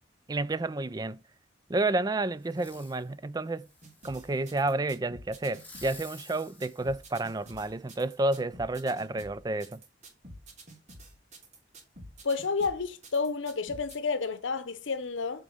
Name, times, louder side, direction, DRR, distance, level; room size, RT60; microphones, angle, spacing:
voice 1, 0.3-1.2 1.7-3.7 4.0-9.8, right 2 dB, 20° right, 0.4 m, -30 dB
Fireworks, 2.4-3.0 3.6-4.6 5.4-7.8 8.3-8.4, left 2 dB, 10° left, 2.7 m, -52 dB
sound 1, 3.8-14.0, right 1 dB, 40° right, 2.1 m, -49 dB
voice 2, 12.2-15.4, left 4 dB, 85° left, 0.8 m, -30 dB
8.2 x 3.8 x 5.4 m
head